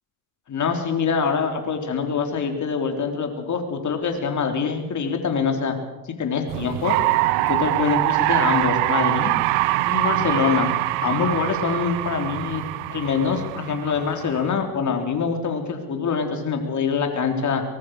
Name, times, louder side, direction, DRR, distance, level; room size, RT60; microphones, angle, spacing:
voice 1, 0.5-5.8 6.1-7.0 7.4-9.4 9.9-10.7 11.0-12.6 12.9-17.6, left 6 dB, 40° left, 5 dB, 3.7 m, -24 dB
sound 1, 6.5-14.5, right 18 dB, 70° right, 1.2 m, -23 dB
23.5 x 19.5 x 6.5 m, 1.1 s
hypercardioid pair, 70°, 45 cm